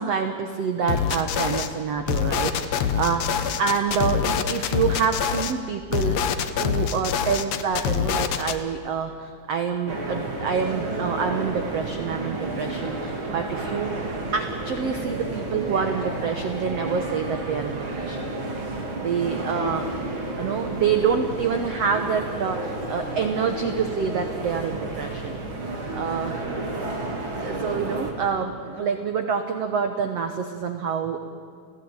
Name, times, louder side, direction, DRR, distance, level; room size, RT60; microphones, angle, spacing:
voice 1, 0.0-18.2 19.0-19.9 20.4-26.4 27.4-31.2, right 6 dB, 70° right, 6 dB, 1.5 m, -27 dB
sound 1, 0.9-1.7 2.1-5.5 5.9-8.6, left 8 dB, 75° left, 1.5 m, -25 dB
sound 2, 9.9-28.1, right 2 dB, 35° right, 3.1 m, -31 dB
30.0 x 16.5 x 8.9 m, 2.4 s
omnidirectional pair, 4.5 m